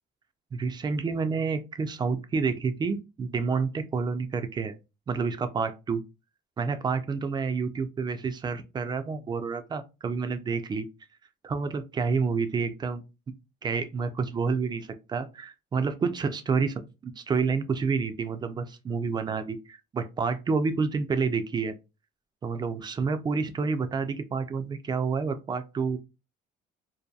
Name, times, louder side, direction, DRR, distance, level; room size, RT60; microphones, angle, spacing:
voice 1, 0.5-4.7 5.1-6.0 6.6-10.9 11.4-13.0 13.6-21.7 22.4-26.0, right 5 dB, 25° right, 0.3 m, -29 dB
2.7 x 2.2 x 2.2 m
cardioid pair, 110°, 17 cm